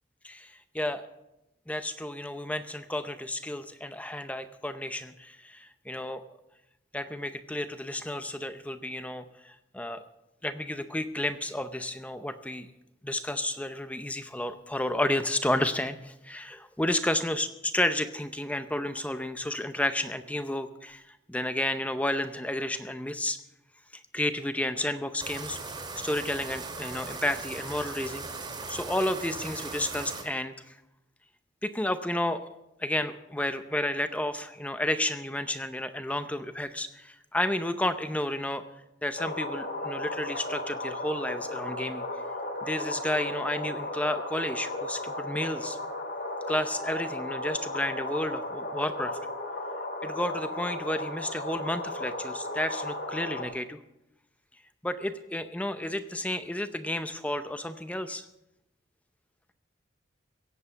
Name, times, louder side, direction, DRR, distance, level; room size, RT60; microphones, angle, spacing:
voice 1, 0.2-1.1 1.7-6.2 6.9-10.0 10.4-12.7 13.0-23.4 24.1-25.6 26.0-28.3 28.7-30.7 31.6-32.5 32.8-38.6 39.0-42.0 42.6-45.8 46.5-49.2 50.0-53.8 54.8-58.2, left 1 dB, 5° left, 10 dB, 0.6 m, -31 dB
sound 1, 25.2-30.2, right 3 dB, 25° right, 2.2 m, -38 dB
sound 2, 39.2-53.4, left 1 dB, 55° left, 1.9 m, -35 dB
16.5 x 8.0 x 7.0 m, 0.89 s
head